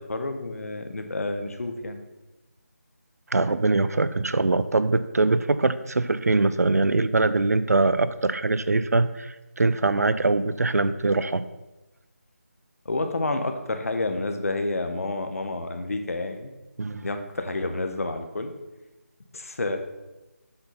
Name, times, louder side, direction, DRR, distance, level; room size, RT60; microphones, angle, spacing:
voice 1, 0.0-2.0 12.8-16.5 17.0-18.5 19.3-19.8, left 2 dB, 70° left, 6 dB, 1.1 m, -29 dB
voice 2, 3.3-11.4 16.8-17.1, right 3 dB, 90° right, 14 dB, 0.5 m, -23 dB
7.9 x 4.1 x 5.9 m, 1.1 s
figure-of-eight pair, 170°, 8 cm